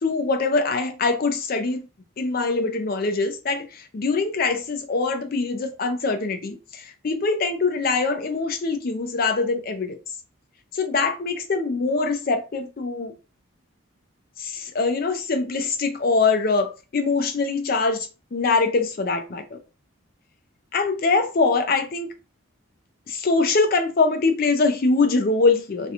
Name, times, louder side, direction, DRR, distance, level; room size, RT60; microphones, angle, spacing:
voice 1, 0.0-1.9 2.2-10.0 10.7-13.1 14.4-19.6 20.7-22.1 23.1-25.9, left 3 dB, 45° left, 0.4 m, -23 dB
2.5 x 2.2 x 2.8 m
head